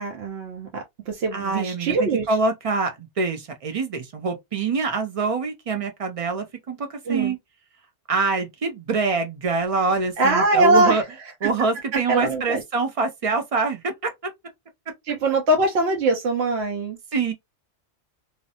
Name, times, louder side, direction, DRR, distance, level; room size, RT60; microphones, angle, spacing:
voice 1, 0.0-2.3 7.1-7.3 10.2-11.0 11.4-11.5 12.1-12.6 15.1-17.0, right 2 dB, 70° right, 0.8 m, -22 dB
voice 2, 1.3-7.4 8.1-11.0 11.4-14.3 17.1-17.3, right 4 dB, 50° right, 0.4 m, -25 dB
2.5 x 2.0 x 2.7 m
omnidirectional pair, 1.2 m